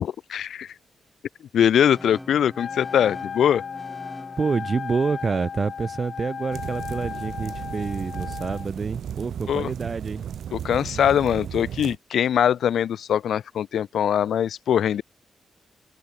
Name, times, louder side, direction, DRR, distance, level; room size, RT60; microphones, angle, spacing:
voice 1, 0.3-0.7 1.5-3.6 9.5-9.7 10.5-15.0, left 9 dB, 80° left, 1.2 m, -22 dB
sound 1, 1.9-7.9, left 1 dB, 10° left, 5.4 m, -45 dB
Wind instrument woodwind instrument, 2.5-8.7, left 7 dB, 60° left, 4.1 m, -35 dB
voice 2, 4.4-10.2, right 5 dB, 45° right, 1.0 m, -27 dB
sound 2, 6.5-12.0, right 9 dB, 80° right, 6.0 m, -35 dB
cardioid pair, 70°, 0 cm